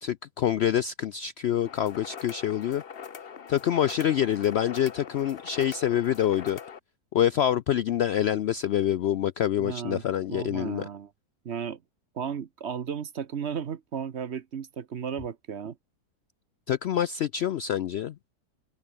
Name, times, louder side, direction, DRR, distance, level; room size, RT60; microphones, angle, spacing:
voice 1, 0.0-2.8 3.5-6.6 7.1-10.9 16.7-18.2, left 10 dB, 90° left, 0.5 m, -26 dB
sound 1, 1.6-6.8, left 7 dB, 40° left, 1.1 m, -43 dB
voice 2, 9.6-10.0 10.3-11.1 11.4-11.8 12.1-15.8, right 7 dB, 50° right, 1.1 m, -34 dB
omnidirectional pair, 1.7 m